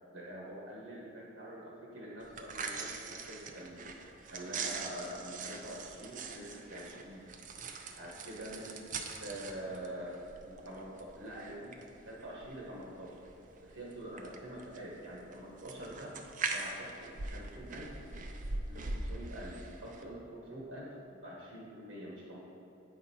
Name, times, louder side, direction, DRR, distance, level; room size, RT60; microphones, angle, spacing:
voice 1, 0.1-3.8 4.3-7.2 8.0-8.8 9.2-11.8 12.0-13.2 13.6-16.1 16.5-18.1 18.7-22.4, right 1 dB, 80° right, -4 dB, 1.2 m, -45 dB
sound 1, 2.2-20.0, right 4 dB, 40° right, 0.5 m, -43 dB
8.3 x 5.1 x 4.3 m, 2.9 s
head